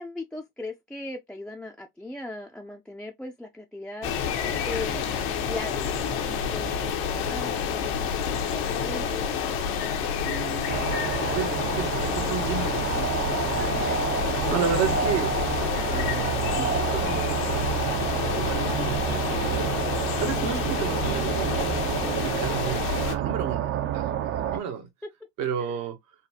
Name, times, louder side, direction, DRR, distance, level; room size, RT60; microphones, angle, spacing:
voice 1, 0.0-4.1 4.6-9.3 13.8-14.1 20.4-20.7 24.5-24.6 25.6-25.8, left 2 dB, 5° left, 0.4 m, -39 dB
sound 1, 4.0-23.2, left 7 dB, 80° left, 0.9 m, -29 dB
voice 2, 10.2-10.8 11.3-13.2 13.5-13.9 14.5-15.5 15.9-19.7 20.2-21.9 22.2-24.9 25.4-26.0, right 7 dB, 65° right, 1.1 m, -32 dB
sound 2, 10.7-24.6, right 9 dB, 40° right, 0.6 m, -29 dB
4.1 x 2.2 x 2.7 m
supercardioid pair, 90°, 31 cm